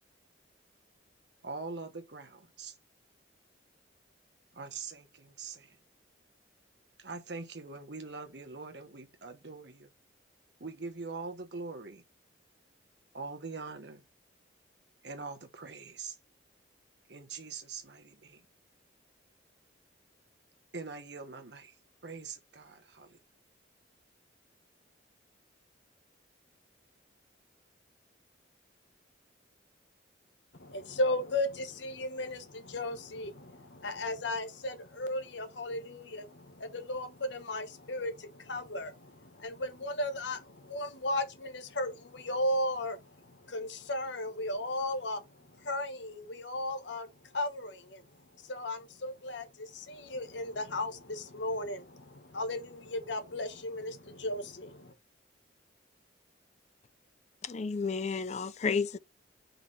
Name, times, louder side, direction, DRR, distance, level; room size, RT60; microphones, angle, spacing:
voice 1, 1.4-2.8 4.5-5.8 7.0-9.9 10.6-12.0 13.1-14.0 15.0-16.2 17.1-18.4 20.7-21.7 22.0-23.2, right 4 dB, 60° right, 1.2 m, -43 dB
voice 2, 30.6-47.1 47.3-48.0 48.4-54.9, left 1 dB, 70° left, 1.2 m, -35 dB
voice 3, 57.4-59.0, left 5 dB, 35° left, 0.4 m, -31 dB
5.2 x 4.9 x 4.0 m
head